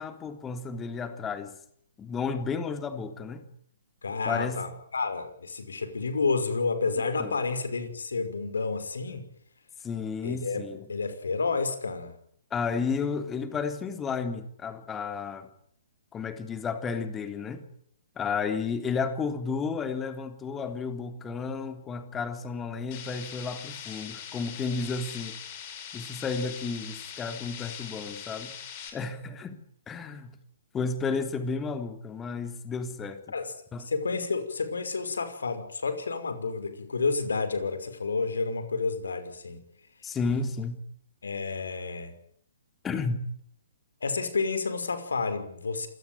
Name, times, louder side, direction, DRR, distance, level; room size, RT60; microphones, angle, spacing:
voice 1, 0.0-1.5 2.0-3.4 4.3-4.6 7.2-7.3 9.8-10.8 12.5-15.5 16.1-17.6 18.2-25.4 25.9-28.5 28.9-29.6 29.9-30.3 30.7-33.2 33.7-33.9 40.0-40.8 42.8-43.2, left 5 dB, 15° left, 3.4 m, -32 dB
voice 2, 4.0-9.3 10.2-12.2 33.3-33.5 33.8-39.6 41.2-42.1 44.0-45.9, left 4 dB, 75° left, 5.5 m, -30 dB
sound 1, 22.9-28.9, left 8 dB, 40° left, 7.3 m, -41 dB
27.5 x 18.0 x 9.3 m
figure-of-eight pair, 125°, 0 cm